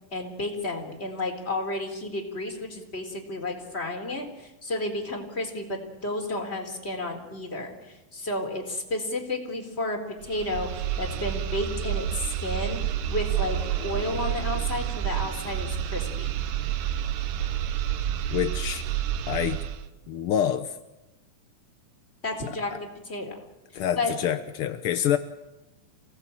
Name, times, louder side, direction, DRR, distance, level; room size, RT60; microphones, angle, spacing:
voice 1, 0.1-16.3 22.2-22.7 23.0-23.3 24.0-24.1, left 2 dB, 20° left, 2 dB, 3.9 m, -32 dB
sound 1, 10.2-19.9, right 10 dB, 85° right, 2.8 m, -29 dB
sound 2, 12.2-18.3, right 4 dB, 30° right, 2.8 m, -46 dB
voice 2, 18.3-18.8 19.3-19.6 20.1-20.7 22.5-22.6 23.7-25.2, left 10 dB, 75° left, 9 dB, 1.3 m, -27 dB
27.0 x 18.5 x 9.0 m, 0.99 s
omnidirectional pair, 3.8 m